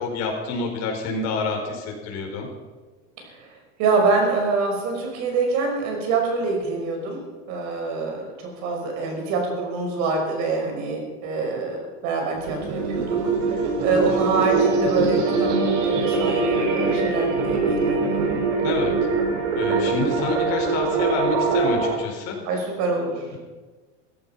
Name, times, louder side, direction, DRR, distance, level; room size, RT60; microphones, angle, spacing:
voice 1, 0.0-2.5 18.6-18.9 19.5-22.4, left 3 dB, 45° left, 1 dB, 4.6 m, -28 dB
voice 2, 3.2-7.2 7.5-18.4 22.4-23.3, right 4 dB, 50° right, 2 dB, 5.5 m, -25 dB
sound 1, 12.4-21.9, right 4 dB, 90° right, 5.2 m, -23 dB
16.5 x 15.0 x 5.7 m, 1.3 s
supercardioid pair, 160°, 37 cm